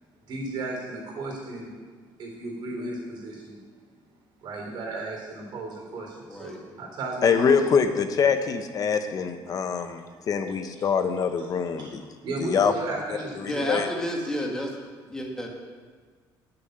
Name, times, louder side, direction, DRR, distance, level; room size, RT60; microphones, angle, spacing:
voice 1, 0.3-1.7 2.2-3.6 4.4-7.6 10.8-10.9 11.8-11.9 12.2-13.7, right 2 dB, 55° right, -1 dB, 3.8 m, -34 dB
voice 2, 6.3-6.6 13.5-14.7 15.1-15.5, equal, 5° left, -1 dB, 1.9 m, -30 dB
voice 3, 7.2-12.0 12.4-12.7 13.3-13.9, left 6 dB, 40° left, 8 dB, 0.9 m, -24 dB
9.2 x 6.9 x 8.0 m, 1.5 s
cardioid pair, 120°, 9 cm